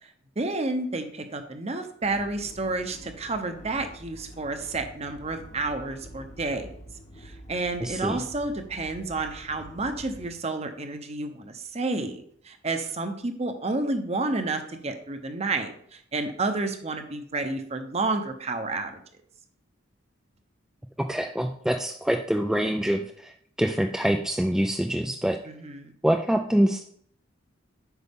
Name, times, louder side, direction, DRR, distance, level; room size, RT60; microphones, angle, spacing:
voice 1, 0.4-6.7 7.2-19.0 25.5-25.9, right 3 dB, 35° right, 7 dB, 0.8 m, -30 dB
sound 1, 2.0-10.3, equal, 35° left, 1.0 m, -46 dB
voice 2, 7.8-8.2 21.0-25.4 26.0-26.8, equal, 5° right, 4 dB, 0.3 m, -25 dB
8.1 x 5.5 x 3.6 m, 0.64 s
head